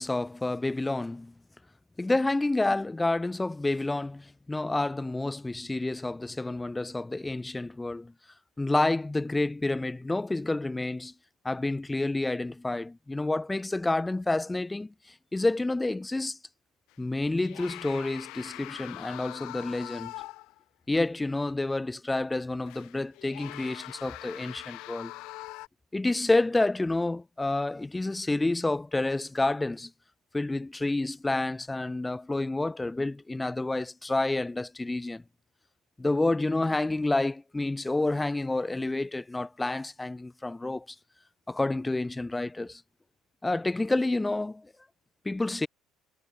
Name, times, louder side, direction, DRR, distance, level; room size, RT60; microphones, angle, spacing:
voice 1, 0.0-1.3 2.0-8.1 8.6-11.1 11.4-16.4 17.0-20.1 20.9-25.1 25.9-29.9 30.3-35.2 36.0-41.0 41.5-42.8 43.4-44.7 45.2-45.7, left 2 dB, 15° left, 2.3 m, -29 dB
sound 1, 16.9-17.0 17.4-20.6 21.0-21.1 22.7-25.7, left 20 dB, 60° left, 7.5 m, -43 dB
figure-of-eight pair, 60°, 0 cm